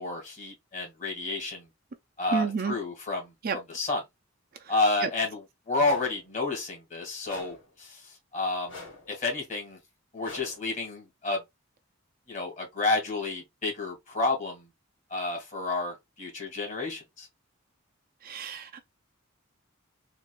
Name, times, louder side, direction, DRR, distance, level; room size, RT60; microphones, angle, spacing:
voice 1, 0.0-1.6 2.2-4.0 4.7-8.8 9.1-9.8 10.1-11.4 12.3-14.6 15.1-17.3, left 3 dB, 40° left, 1.8 m, -30 dB
voice 2, 2.3-2.8 3.4-3.6 18.2-18.8, right 5 dB, 45° right, 0.5 m, -29 dB
sound 1, 5.8-6.2 7.2-7.7 8.7-9.1 10.2-10.7, left 3 dB, 65° left, 2.1 m, -44 dB
3.9 x 2.6 x 2.3 m
head